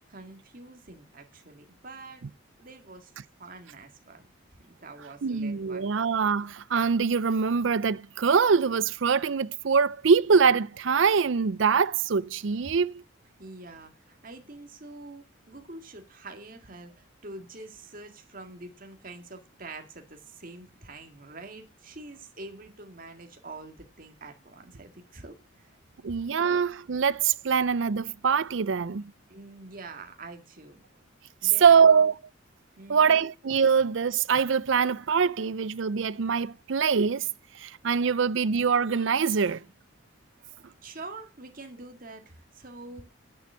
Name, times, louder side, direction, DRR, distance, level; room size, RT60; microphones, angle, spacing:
voice 1, 0.1-2.2 2.6-3.1 3.4-4.3 4.7-5.8 13.4-25.8 29.3-30.8 31.4-32.0 32.8-33.3 40.4-43.0, right 2 dB, 45° right, 2.0 m, -45 dB
voice 2, 5.2-13.0 26.0-29.0 31.4-32.1 32.9-37.3 37.6-39.6, right 6 dB, 65° right, 0.5 m, -23 dB
10.5 x 7.0 x 8.4 m
head